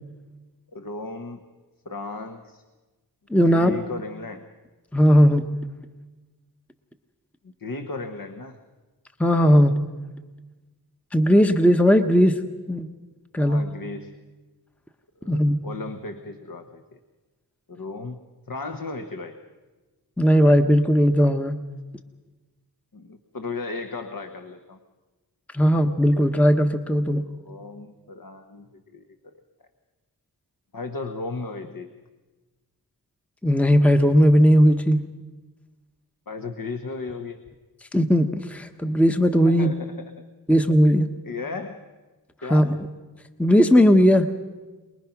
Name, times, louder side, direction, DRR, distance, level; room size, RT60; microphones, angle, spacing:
voice 1, 0.7-1.4 1.8-2.6 3.4-4.4 7.4-8.6 13.4-14.1 15.2-17.0 17.7-18.2 18.5-19.4 22.9-24.8 26.9-29.0 30.7-31.9 36.3-37.4 39.4-40.1 40.5-40.6 41.2-41.8 42.4-42.8, left 3 dB, 60° left, 6 dB, 1.2 m, -35 dB
voice 2, 3.3-3.8 4.9-5.5 9.2-9.8 11.1-12.4 12.7-12.9 13.3-13.6 15.3-15.6 20.2-21.6 25.5-27.2 33.4-35.0 37.9-39.7 40.5-41.1 42.5-42.7 43.4-44.3, equal, 5° left, 7 dB, 0.9 m, -17 dB
23.5 x 20.5 x 5.9 m, 1.3 s
wide cardioid pair, 60°, 39 cm